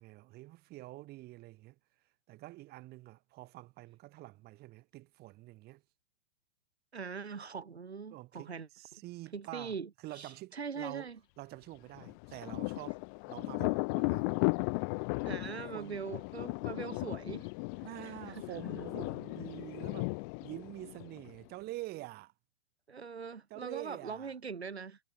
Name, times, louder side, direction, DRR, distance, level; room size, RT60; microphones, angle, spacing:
voice 1, 0.0-1.8 2.3-5.8 8.1-9.7 10.0-11.1 11.4-13.0 13.3-14.3 15.4-16.0 17.8-22.3 23.5-24.3, right 19 dB, 30° right, 3.4 m, -47 dB
voice 2, 6.9-9.0 9.3-11.2 15.3-17.5 18.0-18.4 22.9-25.0, right 5 dB, 90° right, 2.0 m, -42 dB
Thunder, 12.0-21.5, left 34 dB, 20° left, 0.3 m, -36 dB
hypercardioid pair, 120°, 32 cm